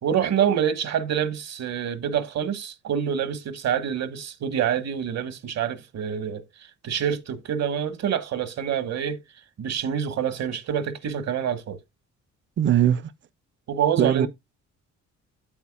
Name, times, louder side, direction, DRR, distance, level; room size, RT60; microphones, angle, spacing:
voice 1, 0.0-6.4 6.8-9.2 9.6-11.8 13.7-14.3, right 8 dB, 60° right, 1.3 m, -26 dB
voice 2, 12.6-13.1 14.0-14.3, right 10 dB, 40° right, 0.6 m, -20 dB
8.7 x 8.2 x 2.4 m
cardioid pair, 90°, 30 cm